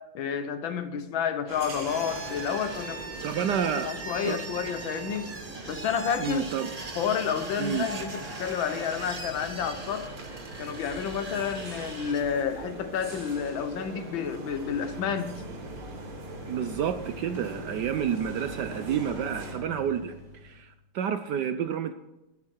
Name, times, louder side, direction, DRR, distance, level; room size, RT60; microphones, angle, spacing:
voice 1, 0.0-3.3 3.8-5.3 5.7-6.5 6.9-10.1 10.6-15.3, left 7 dB, 70° left, 10 dB, 1.6 m, -30 dB
sound 1, 1.5-19.5, right 2 dB, 85° right, 4.3 m, -42 dB
sound 2, 1.9-12.2, right 3 dB, 25° right, 0.8 m, -40 dB
voice 2, 3.2-3.9 4.2-4.4 6.2-6.7 7.6-7.9 16.5-21.9, right 8 dB, 70° right, 10 dB, 1.0 m, -30 dB
sound 3, 14.1-20.7, left 2 dB, 55° left, 5.1 m, -45 dB
12.5 x 12.0 x 4.5 m, 0.96 s
omnidirectional pair, 2.3 m